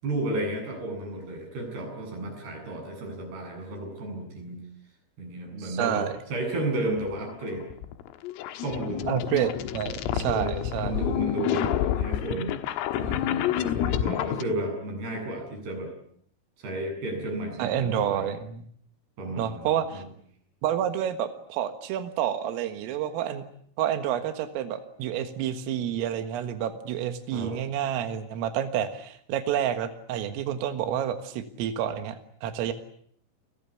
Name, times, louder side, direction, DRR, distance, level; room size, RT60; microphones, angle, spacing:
voice 1, 0.0-4.6 5.2-7.6 8.6-9.1 10.2-12.5 13.0-15.9 16.6-18.2 19.2-20.0 27.3-27.5, right 1 dB, 50° right, 3 dB, 9.7 m, -33 dB
voice 2, 5.6-6.1 9.1-11.0 17.6-18.7 19.4-20.0 20.6-23.4 23.8-32.7, right 10 dB, 85° right, 8 dB, 4.3 m, -29 dB
sound 1, 7.0-14.4, left 11 dB, 85° left, 4.0 m, -29 dB
29.0 x 21.5 x 8.5 m, 0.64 s
omnidirectional pair, 5.8 m